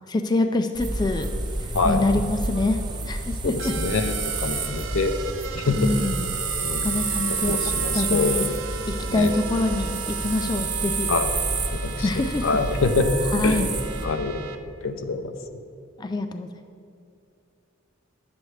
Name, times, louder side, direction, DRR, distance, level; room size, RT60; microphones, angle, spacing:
voice 1, 0.1-1.3 1.6-2.8 3.1-3.7 5.7-6.3 6.8-7.6 7.9-8.5 8.9-11.1 12.0-12.5 13.3-13.7 16.0-16.5, left 2 dB, 20° left, 7 dB, 0.3 m, -25 dB
sound 1, 0.7-14.1, right 3 dB, 20° right, 0.6 m, -29 dB
voice 2, 1.7-2.1 3.4-5.1 5.5-5.9 6.6-6.9 7.5-8.4 9.1-9.3 11.1-11.3 11.8-13.7 14.0-14.4 14.8-15.3, left 3 dB, 75° left, 7 dB, 0.6 m, -25 dB
sound 2, 3.6-14.6, right 7 dB, 70° right, 0.5 m, -37 dB
10.5 x 7.8 x 3.2 m, 2.6 s
head